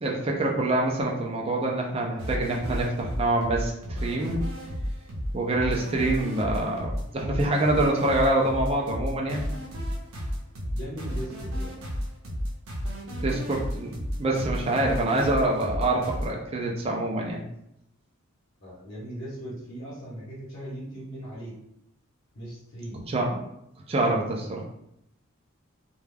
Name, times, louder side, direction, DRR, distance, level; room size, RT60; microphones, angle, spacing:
voice 1, 0.0-4.4 5.3-9.4 13.2-13.9 14.2-17.4 23.1-23.4 23.9-24.6, right 2 dB, 30° right, -1 dB, 0.4 m, -26 dB
sound 1, 2.2-16.3, equal, 80° right, 0.7 m, -32 dB
voice 2, 10.7-11.7 18.6-21.6 22.3-23.0, right 1 dB, 55° left, -8 dB, 0.9 m, -39 dB
2.3 x 2.2 x 3.2 m, 0.78 s
head